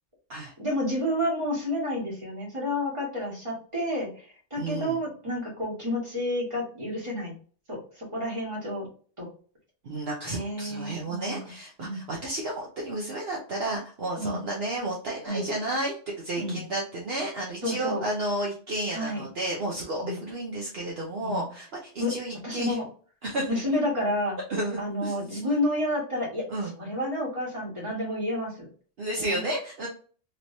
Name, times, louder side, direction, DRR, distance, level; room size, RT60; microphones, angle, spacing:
voice 1, 0.6-7.3 7.7-8.9 9.2-9.3 10.2-11.4 11.8-12.0 14.2-14.4 15.3-15.4 16.4-16.6 17.6-18.0 18.9-19.2 20.0-20.2 21.2-21.5 22.0-22.1 22.4-22.8 23.5-24.4 24.8-26.4 26.8-28.7 29.2-29.4, left 1 dB, 25° right, -3 dB, 1.4 m, -30 dB
voice 2, 4.6-5.0 9.8-22.8 23.2-23.5 24.5-25.5 26.5-26.7 29.0-29.9, right 1 dB, 55° right, -3 dB, 1.0 m, -32 dB
3.2 x 3.0 x 2.6 m, 0.41 s
omnidirectional pair, 1.3 m